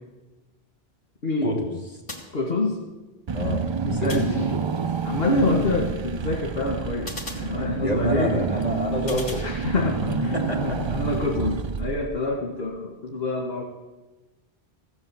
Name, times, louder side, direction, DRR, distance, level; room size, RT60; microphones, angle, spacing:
voice 1, 1.4-1.7 3.3-3.7 4.0-4.8 7.8-9.5 10.3-11.0, equal, 40° left, 0 dB, 2.6 m, -27 dB
sound 1, 2.1-3.0 4.1-5.0 7.1-8.2 9.1-10.1, left 2 dB, 55° left, 2.6 m, -40 dB
voice 2, 2.3-2.8 3.8-4.3 5.0-8.3 9.4-13.6, left 2 dB, 70° left, -2 dB, 2.1 m, -26 dB
Car / Engine, 3.3-12.4, right 5 dB, 50° right, 0.3 m, -29 dB
15.5 x 9.5 x 7.2 m, 1.2 s
omnidirectional pair, 1.0 m